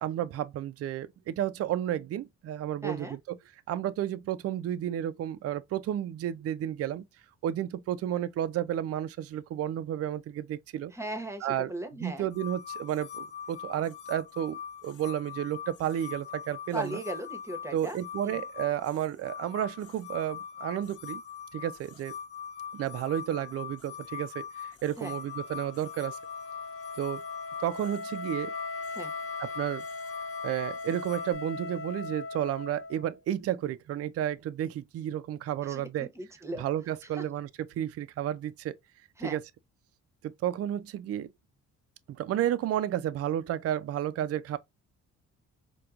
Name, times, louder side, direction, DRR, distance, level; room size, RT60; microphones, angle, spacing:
voice 1, 0.0-3.4 3.7-7.1 7.4-10.9 11.4-11.7 12.0-17.0 17.7-21.2 21.5-22.1 22.7-26.2 27.0-27.2 27.6-28.5 29.4-29.8 30.4-36.1 36.6-37.5 37.8-38.7 39.2-39.4 40.2-41.3 42.1-44.6, right 11 dB, 50° right, 0.4 m, -32 dB
voice 2, 2.8-3.2 10.9-12.3 16.7-18.0 18.2-18.4 25.0-25.1 28.9-29.1 35.7-36.6 37.2-37.3 39.2-39.4, right 1 dB, 10° right, 0.9 m, -38 dB
sound 1, 12.3-31.3, left 8 dB, 80° left, 0.9 m, -42 dB
Wind instrument woodwind instrument, 25.1-33.1, left 3 dB, 50° left, 0.5 m, -39 dB
4.4 x 2.2 x 2.4 m
cardioid pair, 90°, 30 cm